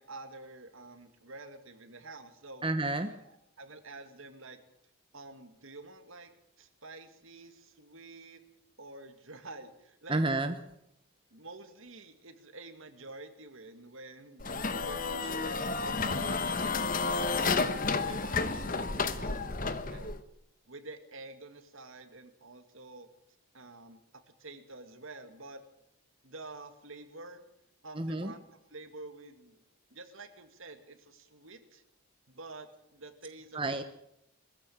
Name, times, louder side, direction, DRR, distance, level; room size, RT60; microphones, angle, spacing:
voice 1, 0.0-2.6 3.1-4.6 5.1-6.3 6.6-8.4 8.8-10.2 11.3-14.5 14.8-17.8 18.1-20.2 20.7-23.1 23.5-24.0 24.4-25.6 26.2-27.4 27.8-29.6 29.9-31.8 32.3-33.6, right 2 dB, 70° right, 8 dB, 2.4 m, -49 dB
voice 2, 2.6-3.1 10.1-10.6 28.0-28.3 33.5-33.8, right 2 dB, 25° right, 8 dB, 1.1 m, -30 dB
sound 1, 14.4-20.2, left 4 dB, 40° left, 1.2 m, -31 dB
21.5 x 14.5 x 8.9 m, 0.77 s
head